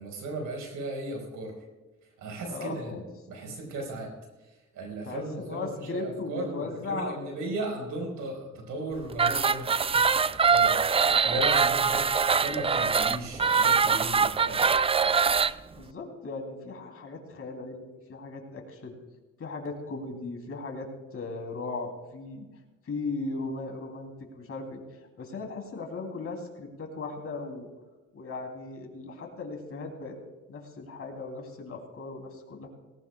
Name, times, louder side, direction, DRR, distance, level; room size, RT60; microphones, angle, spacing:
voice 1, 0.0-1.5 2.2-3.0 3.3-4.1 4.7-14.6, right 2 dB, 90° right, 1 dB, 4.8 m, -36 dB
voice 2, 2.5-3.1 5.0-7.2 10.9-11.3 15.7-19.0 19.4-22.5 22.8-24.8 25.2-27.7 28.1-30.2 30.5-32.7, left 3 dB, 50° left, 2 dB, 3.2 m, -37 dB
sound 1, 9.1-15.5, right 5 dB, 20° right, 0.3 m, -23 dB
18.5 x 18.0 x 2.4 m, 1.2 s
cardioid pair, 90°, 30 cm